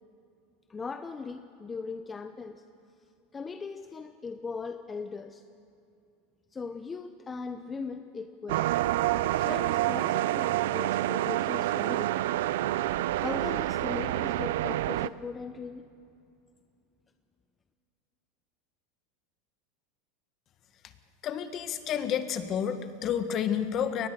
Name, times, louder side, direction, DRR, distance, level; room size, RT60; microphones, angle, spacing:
voice 1, 0.7-2.6 3.3-5.4 6.5-8.7 9.4-12.2 13.1-15.9, left 4 dB, 20° left, 9 dB, 0.8 m, -39 dB
sound 1, 8.5-15.1, right 15 dB, 75° right, 0.5 m, -28 dB
voice 2, 21.2-24.1, left 8 dB, 40° left, 9 dB, 1.7 m, -30 dB
23.0 x 19.5 x 6.8 m, 2.6 s
supercardioid pair, 115°, 0 cm